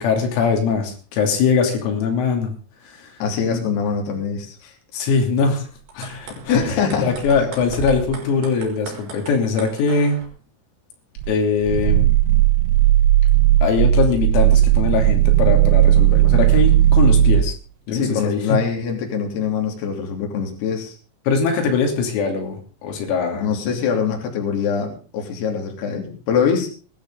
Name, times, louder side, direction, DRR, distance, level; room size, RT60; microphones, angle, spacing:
voice 1, 0.0-2.5 2.9-3.1 3.5-3.6 4.9-5.6 6.0-6.6 7.0-10.2 11.3-12.1 13.6-17.5 17.9-18.4 21.3-22.6 22.8-23.6, left 5 dB, 90° left, 2 dB, 5.8 m, -21 dB
voice 2, 3.2-4.7 6.5-7.1 17.9-21.0 23.3-26.7, left 6 dB, 55° left, 1 dB, 4.9 m, -23 dB
sound 1, 5.9-10.3, right 4 dB, 60° right, 6.3 m, -35 dB
Growling, 11.2-17.5, right 12 dB, 80° right, 3.4 m, -15 dB
19.5 x 13.0 x 3.8 m, 0.37 s
omnidirectional pair, 5.9 m